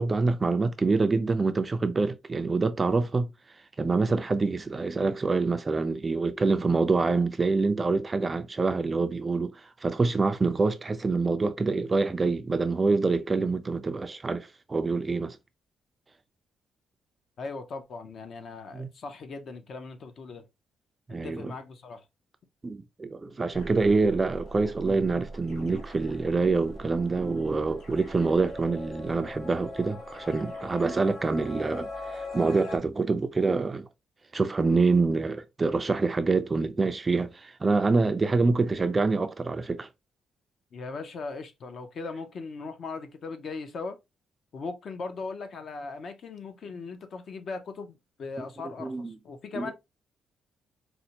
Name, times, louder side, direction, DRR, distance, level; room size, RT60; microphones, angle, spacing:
voice 1, 0.0-3.3 3.8-15.4 18.7-18.9 21.1-21.5 22.6-33.9 34.3-39.9 48.4-48.5 48.8-49.2 49.6-49.7, right 3 dB, 20° right, 0.3 m, -26 dB
voice 2, 17.4-20.5 21.2-22.0 40.7-44.0 44.5-47.9 48.2-49.7, left 4 dB, 50° left, 0.6 m, -38 dB
sound 1, 23.5-32.8, left 1 dB, 70° left, 1.4 m, -41 dB
4.2 x 2.1 x 2.7 m
cardioid pair, 145°, 0 cm